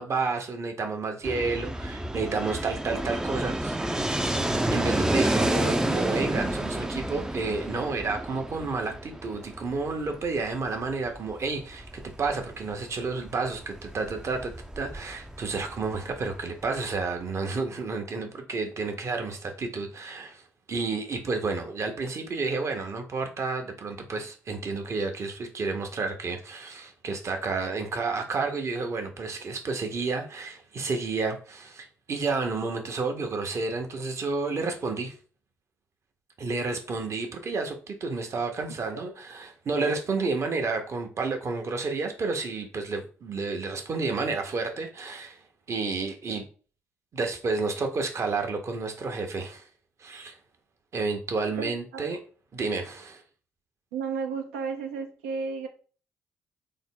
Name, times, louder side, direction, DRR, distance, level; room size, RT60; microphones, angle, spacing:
voice 1, 0.0-3.8 4.7-20.4 20.7-35.1 36.4-45.4 45.7-46.5 47.1-49.6 50.0-50.4 50.9-52.2 52.5-53.2, right 4 dB, 45° right, 0.8 m, -30 dB
Fixed-wing aircraft airplane, 1.2-17.0, right 1 dB, 10° right, 0.4 m, -30 dB
voice 2, 51.6-52.0 53.9-55.7, right 5 dB, 80° right, 0.5 m, -33 dB
3.6 x 2.0 x 3.7 m
hypercardioid pair, 40°, 7 cm